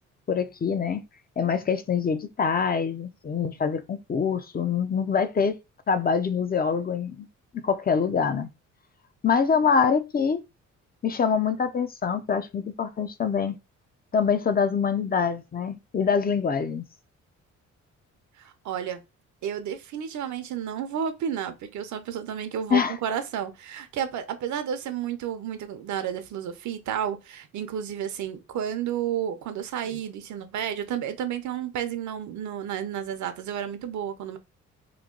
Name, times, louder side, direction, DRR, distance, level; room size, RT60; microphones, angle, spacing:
voice 1, 0.3-1.0 1.4-5.6 5.9-7.3 7.5-8.5 9.2-10.4 11.0-13.6 14.1-16.8 22.7-22.9, left 6 dB, 30° left, 0.5 m, -25 dB
voice 2, 18.4-19.0 19.4-34.4, right 9 dB, 70° right, 0.7 m, -31 dB
3.1 x 2.2 x 3.7 m
cardioid pair, 90°, 30 cm